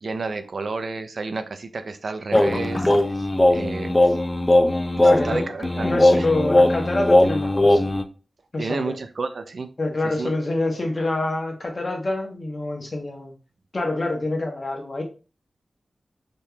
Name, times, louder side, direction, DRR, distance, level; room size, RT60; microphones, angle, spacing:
voice 1, 0.0-4.2 5.0-5.9 6.2-6.3 8.6-9.7 10.0-10.8, right 4 dB, 70° right, 8 dB, 0.4 m, -31 dB
sound 1, 2.3-8.0, left 1 dB, 25° left, 0.5 m, -19 dB
voice 2, 5.0-5.5 5.8-7.8 8.5-9.0 9.8-13.3 13.7-15.0, left 2 dB, 50° left, 2 dB, 0.9 m, -26 dB
3.5 x 2.9 x 2.2 m, 0.34 s
cardioid pair, 45°, 0 cm